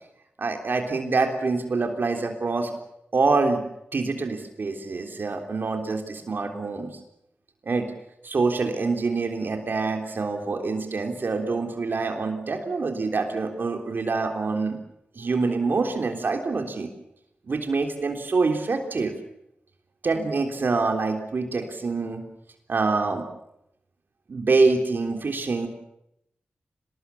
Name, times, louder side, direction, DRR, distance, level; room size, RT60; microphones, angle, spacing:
voice 1, 0.4-2.7 3.1-3.6 3.9-6.9 7.6-7.9 8.2-14.8 15.2-16.9 17.5-19.1 20.0-22.2 22.7-23.2 24.3-25.7, right 3 dB, 60° right, 4 dB, 3.4 m, -25 dB
26.0 x 20.0 x 7.1 m, 0.79 s
wide cardioid pair, 115°, 4 cm